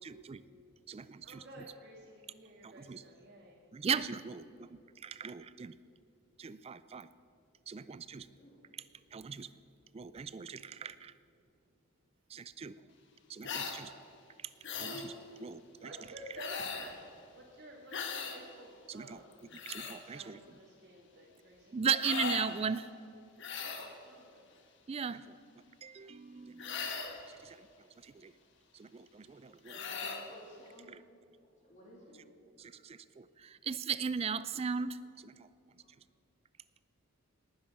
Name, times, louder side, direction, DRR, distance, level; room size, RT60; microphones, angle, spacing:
voice 1, 0.0-0.4 0.9-1.0 2.6-3.0 3.7-5.7 6.4-7.1 7.7-8.3 9.1-9.5 9.9-11.1 12.3-12.7 13.3-13.9 14.8-15.1 15.4-15.9 18.9-19.2 19.7-20.4 21.7-22.9 24.9-25.4 25.8-26.7 27.3-27.7 28.0-28.3 28.7-29.8 30.9-31.0 32.6-35.5, right 6 dB, 25° right, 15 dB, 0.3 m, -38 dB
voice 2, 1.2-3.6 15.4-15.5 15.8-17.0 17.3-19.4 20.0-21.8 24.1-24.4 31.8-32.2, right 1 dB, 50° right, -3 dB, 1.8 m, -52 dB
voice 3, 8.3-8.6 10.4-10.6 29.5-30.9 31.4-32.2 35.8-35.9, equal, 35° left, -3 dB, 3.1 m, -56 dB
sound 1, 13.4-13.8 14.6-15.1 16.4-17.0 17.9-18.4 19.3-20.0 22.0-22.5 23.4-23.9 26.6-27.2 29.7-30.2, left 5 dB, 55° left, 1.4 m, -38 dB
19.5 x 9.4 x 6.0 m, 2.6 s
head